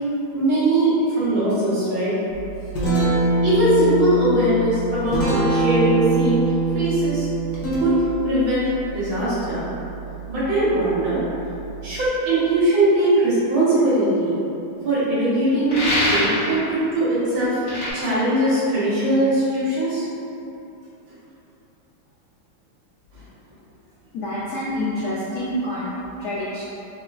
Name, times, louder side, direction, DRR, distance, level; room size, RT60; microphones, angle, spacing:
voice 1, 0.3-2.1 3.4-6.4 6.7-7.3 7.8-9.6 10.3-11.2 11.8-14.4 14.8-17.6 17.9-20.0 23.1-23.2, right 1 dB, 70° right, -11 dB, 2.0 m, -20 dB
Guitar, 2.3-12.1, right 2 dB, 60° left, 1.3 m, -24 dB
sound 1, 15.7-16.5 17.7-17.9, left 1 dB, 45° left, 1.3 m, -22 dB
voice 2, 24.1-25.9 26.2-26.6, left 1 dB, 75° left, -8 dB, 0.8 m, -27 dB
4.3 x 3.0 x 2.4 m, 2.9 s
omnidirectional pair, 2.3 m